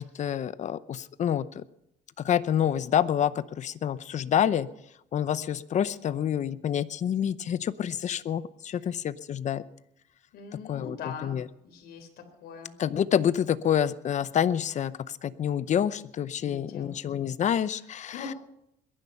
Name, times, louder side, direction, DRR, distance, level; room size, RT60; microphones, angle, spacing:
voice 1, 0.0-1.6 2.2-4.7 5.1-9.6 10.7-11.0 11.2-11.4 12.8-18.2, left 9 dB, 45° left, 16 dB, 0.7 m, -27 dB
voice 2, 10.3-11.4 11.6-12.1 12.4-12.7 16.4-16.9 17.7-17.9 18.1-18.4, left 6 dB, 70° left, 5 dB, 3.9 m, -41 dB
22.0 x 11.0 x 5.6 m, 0.78 s
cardioid pair, 110°, 17 cm